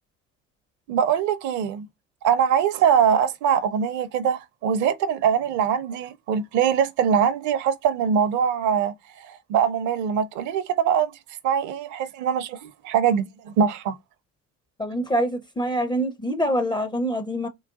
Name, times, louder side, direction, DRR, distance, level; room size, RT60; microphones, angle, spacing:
voice 1, 0.9-1.9 2.2-11.1 11.4-14.0, right 8 dB, 50° right, 0.7 m, -23 dB
voice 2, 14.8-17.5, equal, 10° left, 0.5 m, -25 dB
3.9 x 2.3 x 3.5 m
figure-of-eight pair, 65°, 39 cm